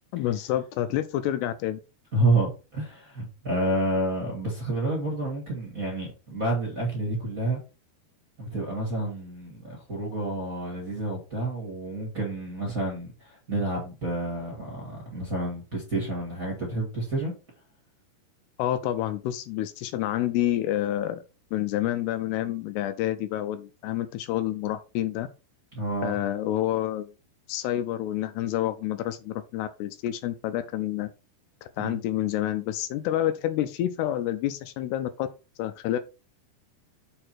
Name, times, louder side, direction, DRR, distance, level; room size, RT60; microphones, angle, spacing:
voice 1, 0.1-1.8 18.6-21.2 21.5-25.3 26.0-27.1 27.5-31.1 31.6-35.3 35.6-36.0, left 12 dB, 80° left, 2.5 m, -28 dB
voice 2, 2.1-7.6 8.4-17.3 25.7-26.2 31.8-32.0, right 2 dB, 30° right, 1.7 m, -29 dB
6.7 x 4.3 x 4.4 m
omnidirectional pair, 4.9 m